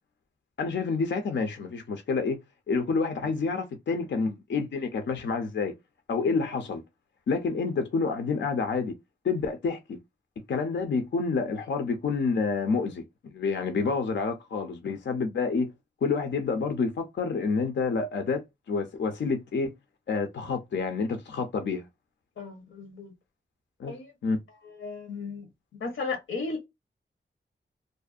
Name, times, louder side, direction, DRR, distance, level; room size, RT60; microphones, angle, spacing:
voice 1, 0.6-2.4 2.7-5.7 6.1-6.8 7.3-8.9 9.2-10.0 10.5-15.7 16.0-19.7 20.1-21.9 23.8-23.9 24.2-24.4, left 4 dB, 65° left, 0.5 m, -28 dB
voice 2, 22.4-23.1 23.9-24.1 24.6-25.5 25.8-26.7, left 4 dB, 85° left, 0.9 m, -35 dB
2.5 x 2.1 x 2.4 m
cardioid pair, 45°, 20 cm